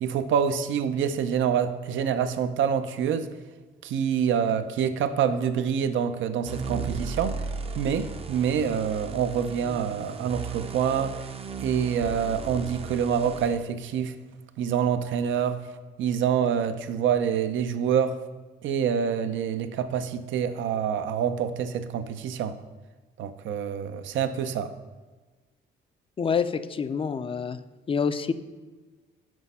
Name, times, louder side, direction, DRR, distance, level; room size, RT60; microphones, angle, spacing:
voice 1, 0.0-3.3 3.8-7.4 7.8-11.1 11.6-14.1 14.6-15.6 16.0-18.2 18.6-22.6 23.2-24.7, right 8 dB, 75° right, 10 dB, 0.6 m, -26 dB
sound 1, 6.4-13.6, right 4 dB, 30° right, 0.5 m, -36 dB
voice 2, 26.2-27.6 27.9-28.3, left 6 dB, 25° left, 12 dB, 0.4 m, -27 dB
6.2 x 5.1 x 5.4 m, 1.3 s
cardioid pair, 90°, 20 cm